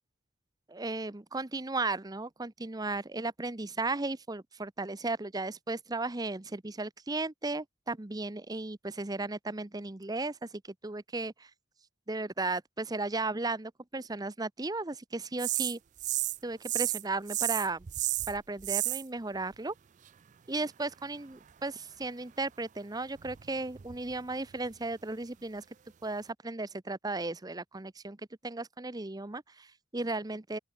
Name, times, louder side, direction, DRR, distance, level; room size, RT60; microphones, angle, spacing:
voice 1, 0.7-10.5 10.8-11.5 12.1-15.8 16.4-17.9 18.3-19.7 20.5-25.6 26.0-28.2 28.4-30.6, right 3 dB, 20° right, 0.7 m, -35 dB
sound 1, 15.4-16.4 16.6-17.0 17.3-19.0 23.2-24.1 24.7-24.8, right 15 dB, 40° right, 0.4 m, -32 dB
open air
head